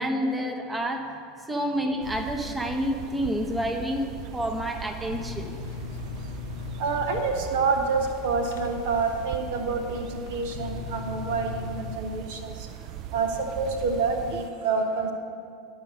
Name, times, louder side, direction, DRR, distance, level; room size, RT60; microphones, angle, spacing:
voice 1, 0.0-5.5, equal, 10° right, 3 dB, 0.9 m, -29 dB
sound 1, 2.0-14.5, right 11 dB, 45° right, 0.4 m, -40 dB
sound 2, 5.1-12.0, left 11 dB, 65° left, 0.4 m, -40 dB
voice 2, 6.8-12.5 13.1-15.1, right 4 dB, 60° right, 4 dB, 0.9 m, -27 dB
11.0 x 5.5 x 6.6 m, 2.4 s
figure-of-eight pair, 80°, 0 cm